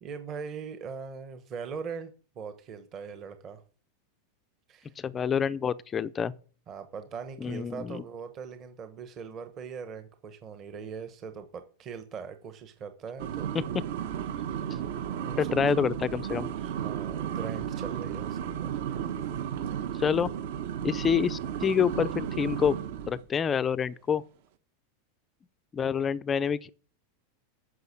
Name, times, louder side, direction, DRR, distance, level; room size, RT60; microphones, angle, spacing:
voice 1, 0.0-3.6 4.7-4.9 6.7-13.5 14.3-14.8 15.1-15.6 16.6-19.1, right 6 dB, 25° right, 1.0 m, -41 dB
voice 2, 5.0-6.3 7.4-8.0 13.5-13.6 15.4-16.5 20.0-20.3 20.8-22.8 23.1-24.2 25.7-26.7, left 7 dB, 15° left, 0.4 m, -27 dB
sound 1, 13.2-23.2, right 9 dB, 55° right, 1.1 m, -33 dB
9.6 x 6.6 x 8.4 m
supercardioid pair, 170°, 0 cm